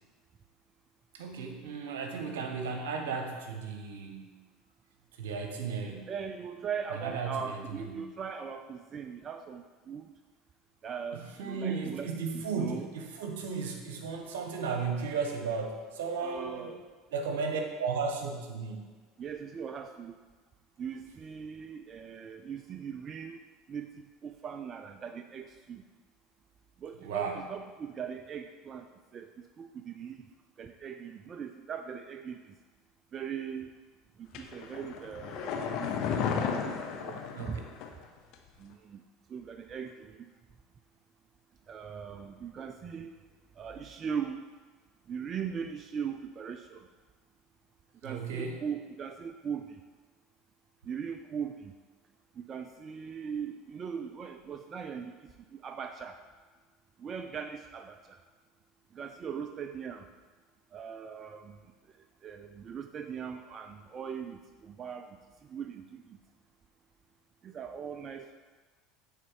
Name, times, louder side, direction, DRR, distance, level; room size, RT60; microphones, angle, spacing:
voice 1, 1.1-4.3 5.2-6.1 6.9-8.0 11.4-16.7 17.1-18.8 27.0-27.4 37.3-37.5 48.0-48.6, right 5 dB, 80° right, 3 dB, 1.1 m, -35 dB
voice 2, 6.1-10.1 10.8-12.9 16.2-16.8 19.2-20.2 20.8-23.4 23.7-25.8 26.8-28.8 29.1-29.3 29.6-30.2 30.6-32.5 33.1-33.7 34.2-37.6 38.6-39.0 39.3-40.2 41.7-43.1 43.6-44.4 45.1-46.8 48.0-49.7 50.9-51.7 52.5-55.2 55.5-56.2 57.0-58.0 58.9-60.0 60.7-61.6 62.2-65.1 65.5-66.2 67.4-68.4, right 7 dB, 40° right, 7 dB, 0.4 m, -40 dB
sound 1, 34.3-38.0 38.3-38.4, left 6 dB, 60° left, 0.8 m, -33 dB
8.7 x 4.2 x 4.7 m, 1.4 s
hypercardioid pair, 85°, 0 cm